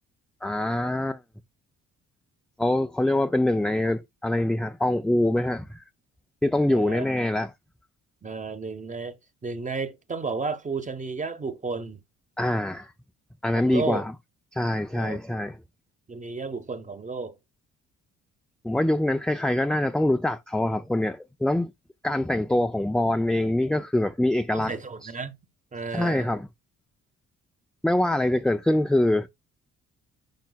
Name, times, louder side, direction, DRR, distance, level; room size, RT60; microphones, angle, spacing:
voice 1, 0.4-1.2 2.6-5.8 6.4-7.5 12.4-12.9 13.4-14.1 14.5-15.6 18.6-21.7 22.0-24.7 25.9-26.5 27.8-29.3, left 1 dB, ahead, 0.4 m, -24 dB
voice 2, 6.7-7.0 8.2-9.2 9.4-12.0 13.5-14.0 14.9-15.2 16.1-17.4 24.5-25.4 25.7-26.4, right 4 dB, 25° right, 1.0 m, -32 dB
10.5 x 4.6 x 2.3 m
cardioid pair, 90°, 30 cm